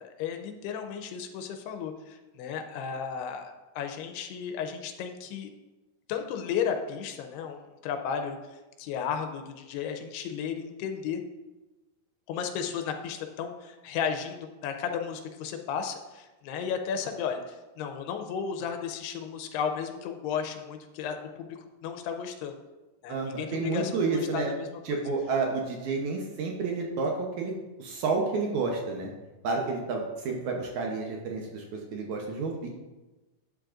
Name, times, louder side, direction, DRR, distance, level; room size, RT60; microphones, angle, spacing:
voice 1, 0.0-5.5 6.1-8.4 8.8-11.2 12.3-22.6 23.0-25.0, left 7 dB, 85° left, 5 dB, 2.7 m, -34 dB
voice 2, 23.1-24.5 24.8-29.1 29.4-32.7, right 4 dB, 80° right, 0 dB, 1.7 m, -30 dB
11.5 x 8.4 x 2.5 m, 1.1 s
omnidirectional pair, 4.7 m